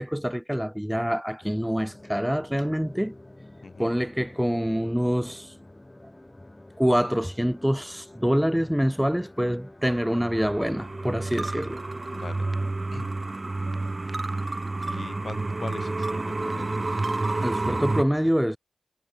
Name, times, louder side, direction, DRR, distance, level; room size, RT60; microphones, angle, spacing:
voice 1, 0.0-3.1 3.8-5.5 6.8-11.8 17.4-18.6, equal, 5° right, 1.9 m, -26 dB
sound 1, 1.4-12.7, left 1 dB, 20° left, 3.8 m, -48 dB
voice 2, 3.6-3.9 12.1-12.5 12.9-13.1 14.9-16.9, left 4 dB, 65° left, 7.1 m, -40 dB
sound 2, 9.8-18.0, right 2 dB, 35° right, 0.7 m, -30 dB
wide cardioid pair, 70°, 0 cm